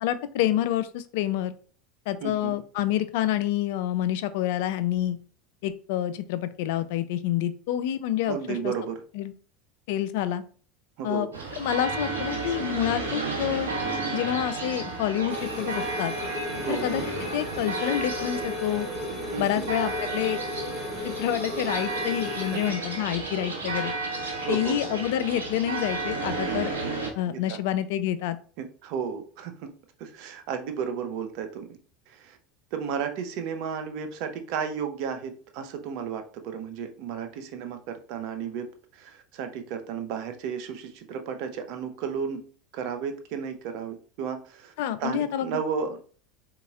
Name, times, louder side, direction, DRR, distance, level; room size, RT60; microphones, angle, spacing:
voice 1, 0.0-1.5 2.1-5.2 5.6-8.7 9.1-9.3 9.9-10.4 11.0-11.3 11.6-13.7 14.1-16.1 16.7-17.0 17.3-18.9 19.4-20.4 21.0-23.9 24.5-26.7 27.2-28.4 44.8-45.5, left 12 dB, 65° left, 13 dB, 0.3 m, -28 dB
voice 2, 2.2-2.6 8.2-9.0 11.0-11.5 16.6-16.9 19.3-19.6 22.4-22.6 24.4-24.8 26.8-26.9 27.3-27.6 28.6-29.7 30.0-31.8 32.1-32.4 32.7-42.4 42.7-44.7 45.0-46.0, right 7 dB, 60° right, 7 dB, 0.6 m, -33 dB
sound 1, 11.3-27.1, right 3 dB, 90° right, 0.8 m, -32 dB
sound 2, 15.3-22.7, left 3 dB, 25° left, 0.7 m, -37 dB
3.9 x 2.8 x 2.4 m, 0.42 s
hypercardioid pair, 85°, 0 cm